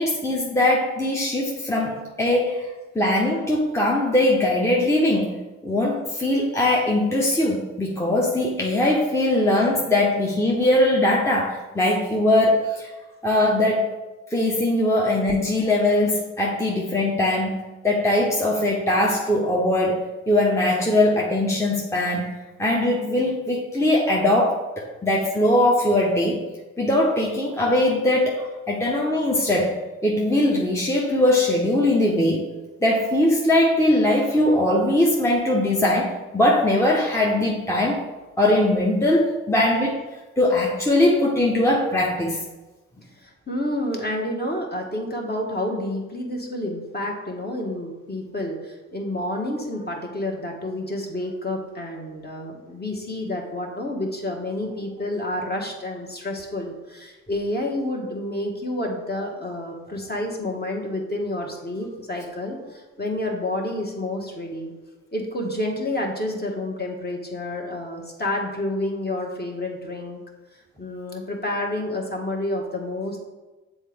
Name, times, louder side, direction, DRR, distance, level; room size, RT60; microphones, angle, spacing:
voice 1, 0.0-2.7 2.9-5.3 5.6-12.9 13.2-13.8 14.3-20.0 20.3-22.3 22.6-26.4 26.8-29.8 30.0-32.4 32.8-38.0 38.4-40.0 40.4-42.4, left 1 dB, 10° left, -3 dB, 1.0 m, -21 dB
voice 2, 43.2-64.7 65.1-70.2 70.8-73.2, left 1 dB, 30° left, 0 dB, 1.5 m, -29 dB
7.2 x 3.8 x 3.5 m, 1.2 s
supercardioid pair, 50°, 34 cm